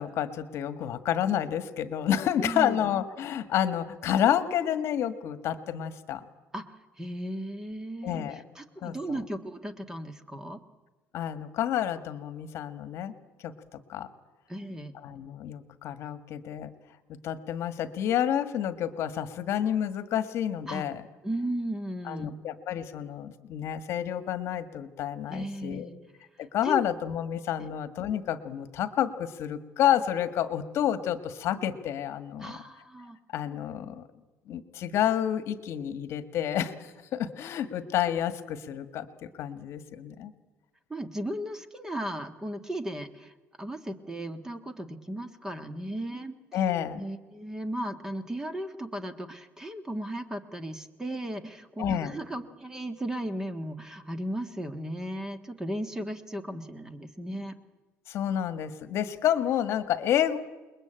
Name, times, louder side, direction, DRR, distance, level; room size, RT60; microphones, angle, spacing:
voice 1, 0.0-6.3 8.0-8.4 8.8-9.2 11.1-13.1 13.4-14.1 15.0-16.7 17.2-21.0 22.1-25.9 26.4-32.5 33.3-34.1 34.5-40.3 46.5-47.1 51.8-52.1 58.1-60.4, left 10 dB, 60° left, 11 dB, 1.7 m, -29 dB
voice 2, 2.4-2.8 6.5-6.7 7.0-10.6 14.5-14.9 20.7-20.9 21.2-22.4 25.3-26.0 26.6-26.8 27.6-27.7 32.4-33.2 40.9-46.4 47.0-57.5, right 1 dB, 10° right, 9 dB, 1.5 m, -36 dB
28.5 x 21.5 x 9.0 m, 1.2 s
cardioid pair, 160°, 5 cm